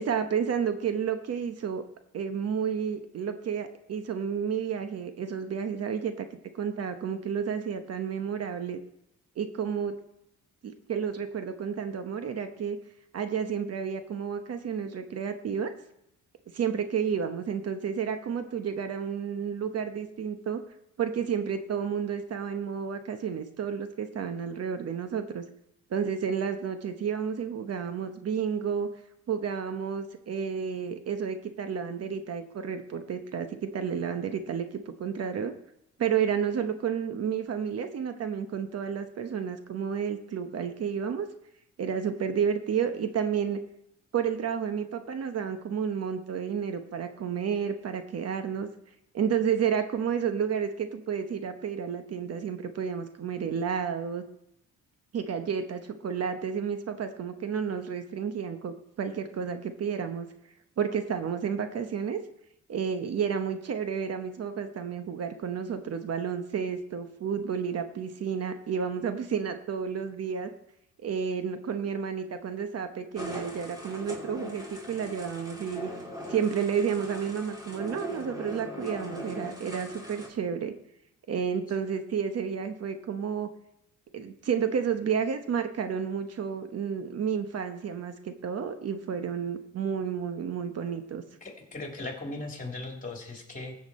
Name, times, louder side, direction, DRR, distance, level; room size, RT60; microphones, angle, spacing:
voice 1, 0.0-1.8 2.1-6.3 6.5-8.8 9.4-9.9 10.6-12.8 13.1-15.7 16.5-20.6 21.0-25.4 25.9-28.9 29.3-35.5 36.0-41.3 41.8-43.6 44.1-48.7 49.1-54.2 55.1-60.3 60.8-62.2 62.7-70.5 71.0-75.9 76.3-80.7 81.3-83.5 84.1-91.2, right 7 dB, 55° right, 8 dB, 1.0 m, -31 dB
sound 1, 73.2-80.3, equal, 15° right, 2.6 m, -40 dB
voice 2, 91.4-93.8, left 2 dB, 25° left, 1 dB, 3.1 m, -38 dB
15.0 x 7.4 x 4.2 m, 0.80 s
cardioid pair, 90°, 30 cm